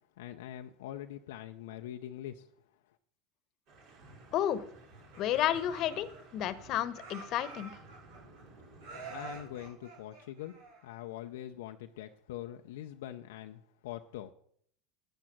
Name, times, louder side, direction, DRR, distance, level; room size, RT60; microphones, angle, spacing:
voice 1, 0.2-2.5 9.1-10.6 10.8-14.3, left 12 dB, 80° left, 5 dB, 0.6 m, -43 dB
sound 1, 3.7-9.7, right 2 dB, 60° right, 6.6 m, -55 dB
voice 2, 4.3-4.6 5.2-6.1 6.3-7.7, left 11 dB, 50° left, 15 dB, 1.1 m, -31 dB
Laughter, 4.9-6.6 6.9-8.4 8.8-11.1, right 4 dB, 80° right, 5.3 m, -48 dB
12.0 x 8.9 x 6.0 m, 0.64 s
hypercardioid pair, 95°, 0 cm